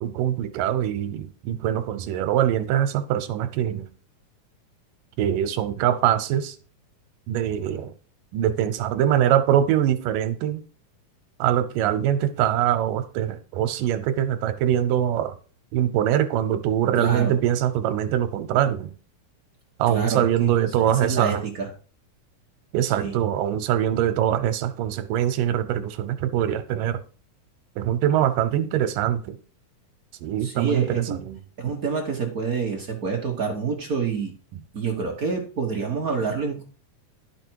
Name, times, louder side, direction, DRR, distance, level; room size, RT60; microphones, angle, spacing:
voice 1, 0.0-3.9 5.2-6.6 7.3-7.9 8.3-10.6 11.4-15.4 15.7-18.9 19.8-21.4 22.7-27.0 27.8-29.4 30.2-31.4, right 10 dB, 85° right, 2.5 m, -23 dB
voice 2, 17.0-17.4 19.9-20.5 20.8-21.7 22.9-23.2 30.4-31.2 31.6-34.3 34.7-36.6, right 5 dB, 60° right, 0.9 m, -27 dB
11.0 x 6.0 x 4.6 m
omnidirectional pair, 3.7 m